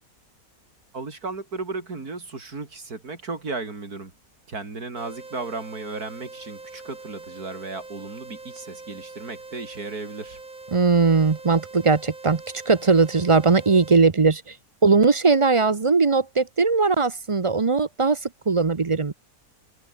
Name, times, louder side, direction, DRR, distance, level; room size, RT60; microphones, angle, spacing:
voice 1, 0.9-4.1 4.5-10.4, right 3 dB, 85° right, 4.1 m, -35 dB
sound 1, 5.0-14.0, right 3 dB, 65° right, 4.5 m, -43 dB
voice 2, 10.7-14.5 14.8-18.2 18.5-19.1, right 4 dB, 30° right, 0.6 m, -19 dB
omnidirectional pair, 1.6 m